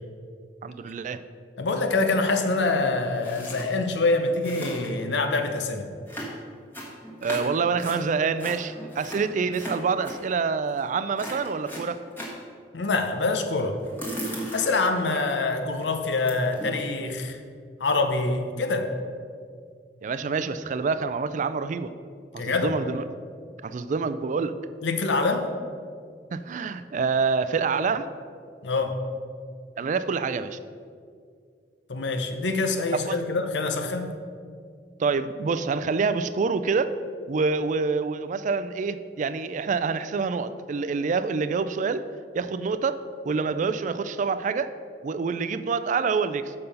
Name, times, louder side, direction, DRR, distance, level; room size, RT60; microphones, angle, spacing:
voice 1, 0.6-1.2 7.2-12.0 20.0-21.9 22.3-23.1 23.6-24.6 26.3-28.1 29.8-30.6 32.9-33.2 35.0-36.9 37.3-42.0 42.3-44.7 45.0-46.5, right 5 dB, 45° right, 12 dB, 0.3 m, -26 dB
voice 2, 1.6-5.9 12.7-13.8 14.5-17.4 17.8-18.9 22.4-22.7 24.8-25.5 28.6-29.0 31.9-34.2, left 3 dB, 80° left, 6 dB, 0.7 m, -25 dB
sound 1, 3.2-3.7 4.0-4.1 4.3-5.1 6.1-8.0 8.4-10.2 10.7-10.9 11.2-12.4 13.8-15.3 15.7-15.9 16.3-16.8, equal, 10° left, 1.4 m, -36 dB
6.8 x 5.4 x 5.4 m, 2.2 s
head